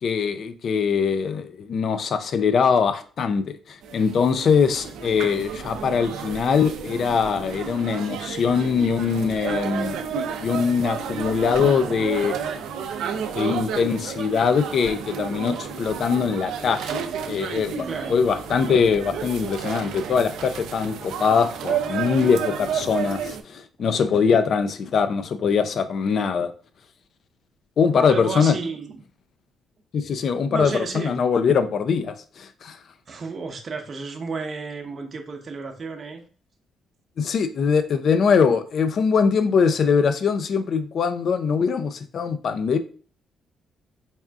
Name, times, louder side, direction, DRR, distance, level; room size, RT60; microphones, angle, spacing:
voice 1, 0.0-10.0 10.4-12.3 13.3-17.0 17.3-17.8 18.1-26.5 27.8-28.5 29.9-32.8 37.2-42.8, left 6 dB, 60° left, 0.4 m, -22 dB
sound 1, 3.8-23.4, right 6 dB, 85° right, 0.4 m, -31 dB
voice 2, 17.8-18.2 23.2-23.3 28.0-29.0 30.5-31.2 33.1-36.2 39.6-39.7, right 4 dB, 45° right, 0.7 m, -32 dB
4.2 x 2.4 x 3.5 m
cardioid pair, 90°, 0 cm